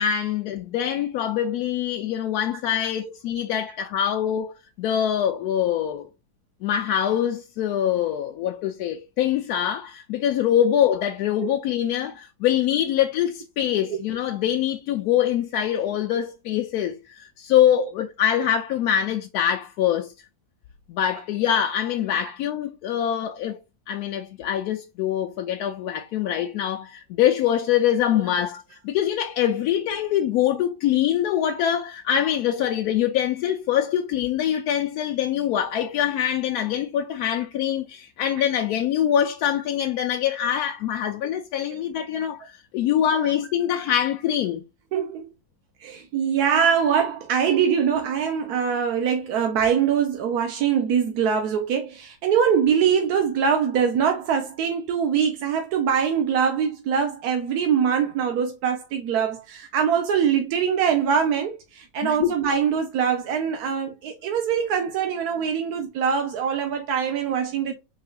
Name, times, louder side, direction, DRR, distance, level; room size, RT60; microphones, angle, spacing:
voice 1, 0.0-4.5 4.8-6.1 6.6-20.1 20.9-23.6 23.9-44.6 62.0-62.3, left 10 dB, 85° left, 1.1 m, -24 dB
voice 2, 44.9-45.3 45.8-67.7, right 7 dB, 85° right, 1.2 m, -23 dB
4.1 x 3.7 x 2.2 m
omnidirectional pair, 1.6 m